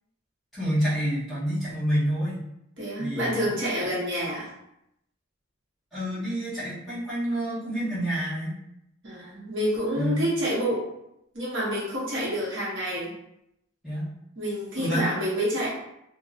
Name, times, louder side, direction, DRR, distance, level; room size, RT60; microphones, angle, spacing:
voice 1, 0.5-2.5 3.0-3.5 5.9-8.6 9.9-10.3 13.8-14.1 14.8-15.1, equal, ahead, -12 dB, 1.1 m, -28 dB
voice 2, 2.8-4.5 9.0-10.9 11.3-13.1 14.4-15.7, equal, 65° right, -7 dB, 0.8 m, -28 dB
2.6 x 2.0 x 2.4 m, 0.80 s
head